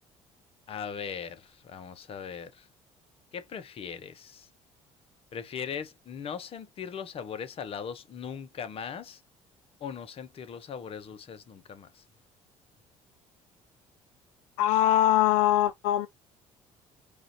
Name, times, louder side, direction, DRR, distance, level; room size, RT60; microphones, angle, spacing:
voice 1, 0.7-2.7 3.3-4.5 5.3-9.2 9.8-12.0, left 7 dB, 45° left, 0.9 m, -39 dB
voice 2, 14.6-16.1, left 13 dB, 90° left, 0.4 m, -22 dB
4.9 x 2.5 x 2.8 m
supercardioid pair, 80°, 13 cm